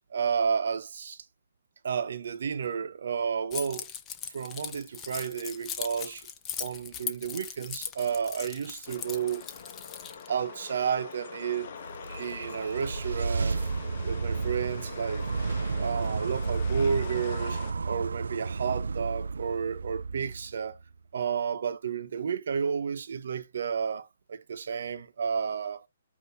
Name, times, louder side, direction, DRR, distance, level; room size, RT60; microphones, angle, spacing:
voice 1, 0.1-1.2 1.8-3.9 4.3-6.3 6.6-9.4 10.3-11.7 12.2-13.6 14.0-15.3 15.8-20.8 21.1-25.9, right 6 dB, 65° right, 1.0 m, -31 dB
Keys jangling, 3.5-10.3, left 8 dB, 20° left, 0.8 m, -39 dB
sound 1, 8.9-17.7, left 6 dB, 50° left, 1.3 m, -43 dB
sound 2, 11.6-20.9, right 4 dB, 85° right, 0.4 m, -32 dB
8.4 x 2.9 x 5.6 m
hypercardioid pair, 150°, 0 cm